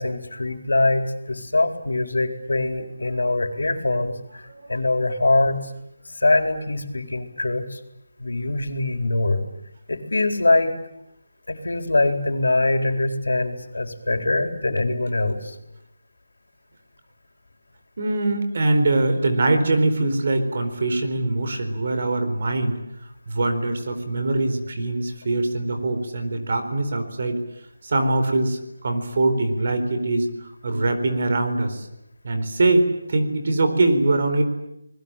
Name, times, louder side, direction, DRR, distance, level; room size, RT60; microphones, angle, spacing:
voice 1, 0.0-5.7 6.1-7.8 8.2-9.4 9.9-10.7 11.5-15.6, left 2 dB, 85° left, 7 dB, 4.2 m, -23 dB
voice 2, 18.0-22.8 23.3-27.4 27.8-30.3 30.6-31.9 32.2-34.4, right 2 dB, 40° right, 7 dB, 4.3 m, -22 dB
29.5 x 20.5 x 9.1 m, 0.82 s
figure-of-eight pair, 175°, 0 cm